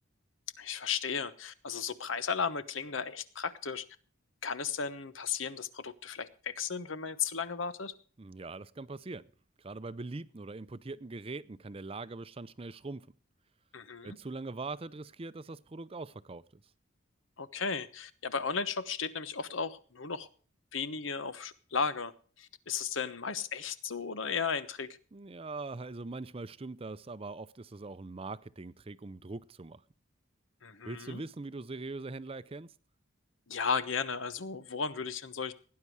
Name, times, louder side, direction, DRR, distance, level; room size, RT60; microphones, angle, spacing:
voice 1, 0.6-3.8 4.4-7.9 13.7-14.2 17.4-20.3 20.7-22.1 22.4-24.9 30.6-31.2 33.5-35.5, left 5 dB, 85° left, 1.1 m, -35 dB
voice 2, 8.2-9.2 9.6-13.1 14.0-16.4 25.1-29.8 30.8-32.7, right 3 dB, 30° right, 0.5 m, -42 dB
17.5 x 9.6 x 4.7 m
head